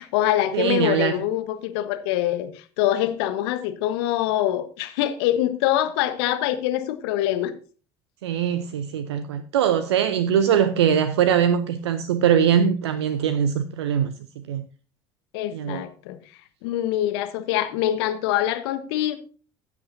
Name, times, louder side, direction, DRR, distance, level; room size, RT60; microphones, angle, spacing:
voice 1, 0.0-2.5 2.8-7.5 15.3-16.2 16.6-19.2, left 13 dB, 65° left, 1.3 m, -24 dB
voice 2, 0.5-1.2 8.2-14.1 14.5-14.6 15.5-15.8, right 8 dB, 75° right, 0.6 m, -22 dB
15.5 x 8.3 x 2.7 m
figure-of-eight pair, 65°, 14 cm